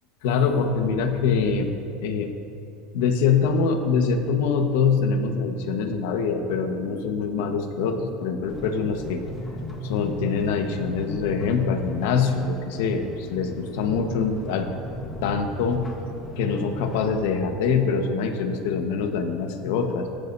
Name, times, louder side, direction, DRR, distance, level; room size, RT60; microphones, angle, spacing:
voice 1, 0.2-1.7 2.0-2.3 2.9-9.2 9.8-14.7 15.2-15.9 16.4-20.1, left 5 dB, 70° left, 5 dB, 1.3 m, -24 dB
sound 1, 8.5-17.1, equal, 15° left, 1.4 m, -37 dB
18.0 x 14.5 x 2.7 m, 2.6 s
cardioid pair, 175°, 0 cm